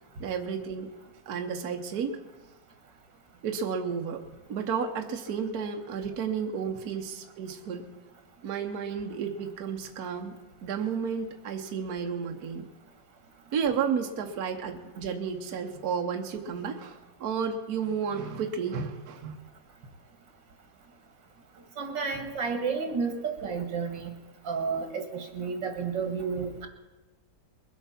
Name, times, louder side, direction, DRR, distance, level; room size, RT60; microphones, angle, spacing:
voice 1, 0.2-0.9 1.3-2.2 3.4-4.2 4.5-7.9 8.4-10.3 10.6-12.7 13.5-19.4, right 6 dB, 60° right, 4 dB, 1.4 m, -32 dB
voice 2, 21.8-24.1 24.4-26.7, right 5 dB, 80° right, 5 dB, 2.4 m, -31 dB
21.5 x 8.2 x 5.8 m, 1.2 s
omnidirectional pair, 1.9 m